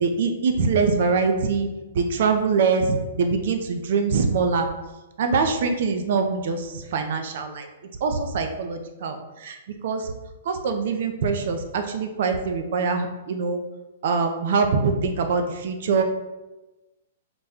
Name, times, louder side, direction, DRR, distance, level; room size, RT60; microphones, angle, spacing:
voice 1, 0.0-1.7 1.9-4.7 5.2-7.7 8.0-9.6 9.8-10.1 10.4-13.6 14.0-16.0, right 4 dB, 60° right, 5 dB, 0.5 m, -23 dB
4.0 x 2.2 x 3.5 m, 1.1 s
hypercardioid pair, 145°, 0 cm